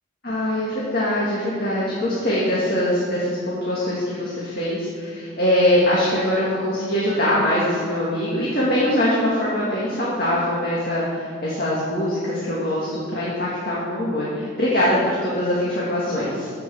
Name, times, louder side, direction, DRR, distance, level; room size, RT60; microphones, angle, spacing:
voice 1, 0.2-16.5, left 1 dB, 50° left, -7 dB, 2.3 m, -22 dB
10.5 x 7.9 x 7.3 m, 2.1 s
head